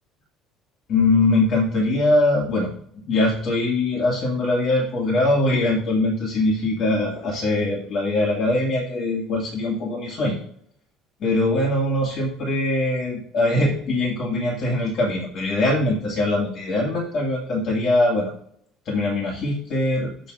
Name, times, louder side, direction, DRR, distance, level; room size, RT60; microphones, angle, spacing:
voice 1, 0.9-10.4 11.2-18.3 18.9-20.3, left 2 dB, 55° left, -2 dB, 2.3 m, -22 dB
7.1 x 5.6 x 6.3 m, 0.66 s
hypercardioid pair, 65°, 0 cm